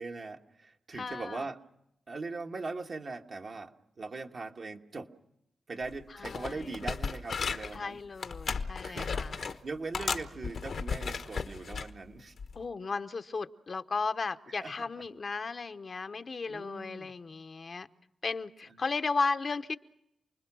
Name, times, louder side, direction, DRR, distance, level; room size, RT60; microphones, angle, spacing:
voice 1, 0.0-1.6 2.1-5.1 5.7-8.0 8.8-12.4 14.6-14.7 16.5-17.1, right 3 dB, 60° right, 3 dB, 1.5 m, -40 dB
voice 2, 0.9-1.4 6.1-6.8 7.7-9.3 12.5-17.9 18.2-19.8, left 4 dB, 55° left, 8 dB, 0.8 m, -35 dB
sound 1, 5.8-6.0 6.2-7.8 8.2-9.6 9.9-11.9 12.4-12.6, left 5 dB, 75° left, 1.1 m, -35 dB
29.0 x 20.5 x 6.2 m, 0.80 s
cardioid pair, 55°, 0 cm